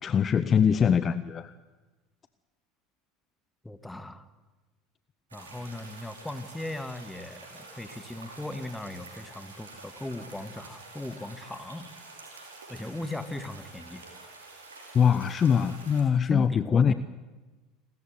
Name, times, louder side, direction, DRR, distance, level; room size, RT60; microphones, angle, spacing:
voice 1, 0.0-1.5 14.9-16.9, left 7 dB, 35° left, 14 dB, 0.8 m, -23 dB
voice 2, 3.6-4.3 5.3-11.9 12.7-14.0 16.2-16.9, left 1 dB, 5° left, 11 dB, 1.8 m, -38 dB
sound 1, 5.3-16.0, right 3 dB, 80° right, 5.1 m, -48 dB
28.5 x 13.5 x 9.7 m, 1.2 s
figure-of-eight pair, 70°, 0 cm